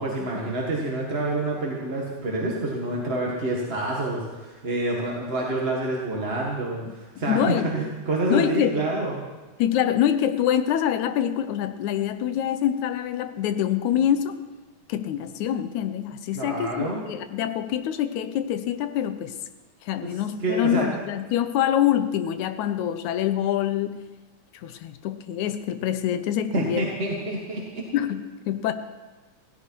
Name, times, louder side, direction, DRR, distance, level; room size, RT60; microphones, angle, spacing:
voice 1, 0.0-9.2 16.3-17.0 20.0-20.1 20.4-20.9 26.5-27.8, right 2 dB, 25° right, -3 dB, 1.4 m, -27 dB
voice 2, 7.2-7.7 8.3-8.8 9.6-14.4 14.9-19.3 19.8-24.0 24.5-26.8 27.9-28.7, left 10 dB, 75° left, 10 dB, 2.2 m, -25 dB
17.0 x 16.5 x 4.6 m, 1.2 s
omnidirectional pair, 3.5 m